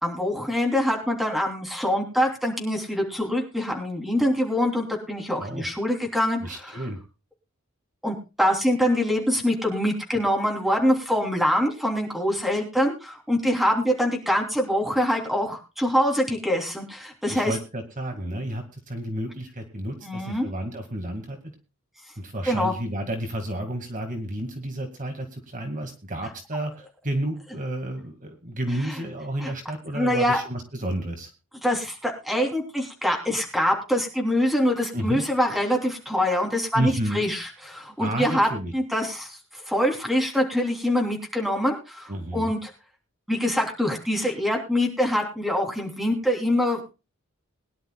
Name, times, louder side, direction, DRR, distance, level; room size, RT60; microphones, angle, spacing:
voice 1, 0.0-6.8 8.0-17.5 20.0-20.5 22.4-22.7 28.9-29.0 29.4-29.5 29.9-30.4 31.6-42.7 43.3-46.8, equal, ahead, 1 dB, 3.2 m, -24 dB
voice 2, 6.4-7.0 17.3-21.4 22.2-31.3 34.9-35.2 36.7-37.2 38.0-38.7 42.1-42.5, right 1 dB, 40° right, 5 dB, 2.0 m, -31 dB
22.0 x 11.0 x 2.3 m, 0.30 s
head